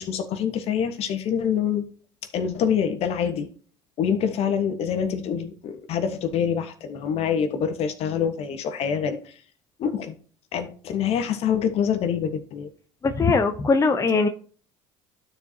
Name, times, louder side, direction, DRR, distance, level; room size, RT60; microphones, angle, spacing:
voice 1, 0.0-1.8 2.3-3.5 4.0-9.2 9.8-10.2 10.5-12.7, left 7 dB, 55° left, 7 dB, 1.5 m, -25 dB
voice 2, 13.0-14.3, left 4 dB, 25° left, 6 dB, 0.9 m, -20 dB
12.5 x 4.5 x 2.9 m, 0.43 s
supercardioid pair, 80°, 12 cm